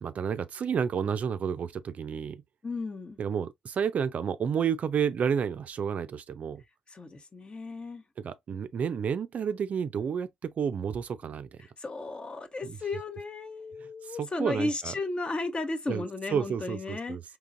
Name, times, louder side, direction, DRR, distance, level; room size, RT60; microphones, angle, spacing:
voice 1, 0.0-2.4 3.2-6.6 8.2-11.5 14.2-14.9 15.9-16.0 16.3-17.2, right 7 dB, 55° right, 0.4 m, -30 dB
voice 2, 2.6-3.2 6.9-8.0 11.6-17.2, left 2 dB, 35° left, 0.9 m, -34 dB
3.7 x 2.9 x 2.5 m
hypercardioid pair, 50°, 3 cm